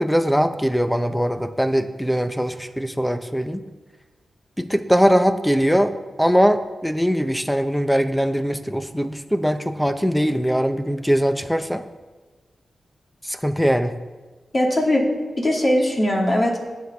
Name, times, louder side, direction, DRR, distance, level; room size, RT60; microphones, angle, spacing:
voice 1, 0.0-3.6 4.6-5.9 6.2-11.8 13.2-13.9, equal, 5° left, 9 dB, 0.6 m, -21 dB
voice 2, 14.5-15.1 15.4-16.6, left 1 dB, 40° left, -2 dB, 2.5 m, -20 dB
19.5 x 6.5 x 3.4 m, 1.3 s
cardioid pair, 80°, 0 cm